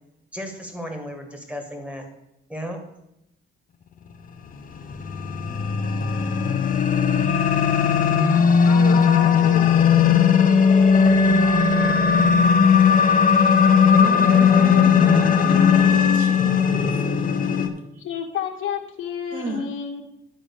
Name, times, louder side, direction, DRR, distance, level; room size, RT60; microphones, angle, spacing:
voice 1, 0.3-2.0 2.5-2.8 10.9-11.5, right 1 dB, 5° right, 4 dB, 1.8 m, -32 dB
sound 1, 4.6-17.7, left 6 dB, 40° left, 0.9 m, -17 dB
voice 2, 8.6-9.7 13.6-16.3 18.0-20.0, left 6 dB, 70° left, 3 dB, 1.4 m, -30 dB
voice 3, 15.7-17.7 19.3-19.7, right 1 dB, 40° right, 2 dB, 2.0 m, -33 dB
10.0 x 4.0 x 6.6 m, 0.84 s
cardioid pair, 100°, 21 cm